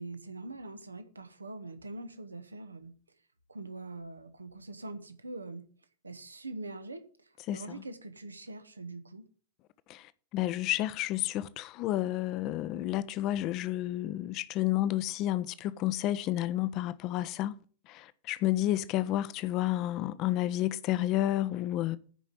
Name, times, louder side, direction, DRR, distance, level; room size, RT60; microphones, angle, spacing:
voice 1, 0.0-2.9 3.5-5.7 6.0-9.3, right 2 dB, 80° right, 1.1 m, -43 dB
voice 2, 7.5-7.8 9.9-17.6 17.9-22.0, left 14 dB, 40° left, 0.7 m, -31 dB
10.0 x 5.2 x 7.3 m
figure-of-eight pair, 90°, 0 cm